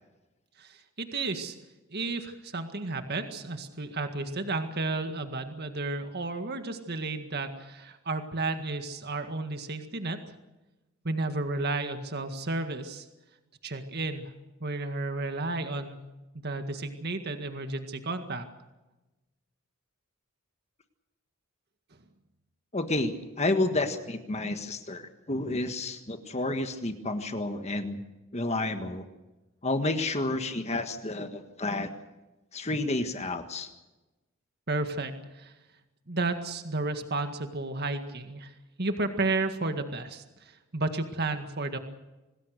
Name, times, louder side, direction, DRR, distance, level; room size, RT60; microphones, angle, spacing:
voice 1, 0.6-1.6 1.9-10.2 11.0-13.1 13.6-14.3 14.6-16.0 16.4-18.5 34.7-35.5 36.1-38.5 38.8-41.8, right 2 dB, 50° right, 7 dB, 1.9 m, -32 dB
voice 2, 22.7-28.0 28.3-29.1 29.6-31.9 32.5-33.7, left 2 dB, 30° left, 7 dB, 1.6 m, -30 dB
26.0 x 20.0 x 6.6 m, 1.1 s
head